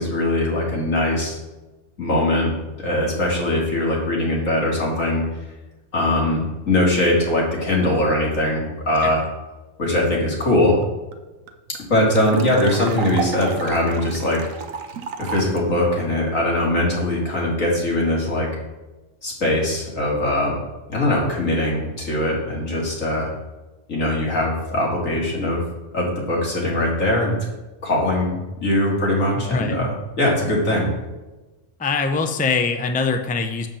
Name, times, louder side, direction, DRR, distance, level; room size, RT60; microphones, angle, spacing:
voice 1, 0.0-1.4 2.0-2.5 2.8-5.2 5.9-9.2 9.8-10.8 11.9-14.4 15.2-18.5 19.2-20.6 20.9-23.3 23.9-25.6 25.9-27.4 27.8-28.3 28.6-30.9, left 1 dB, 90° left, -3 dB, 2.9 m, -21 dB
sound 1, 10.8-10.9 11.1-11.2 11.5-15.6, right 7 dB, 85° right, 1.2 m, -32 dB
voice 2, 29.3-29.8 31.8-33.7, left 4 dB, 10° left, 6 dB, 0.4 m, -23 dB
7.3 x 5.3 x 6.9 m, 1.1 s
omnidirectional pair, 1.3 m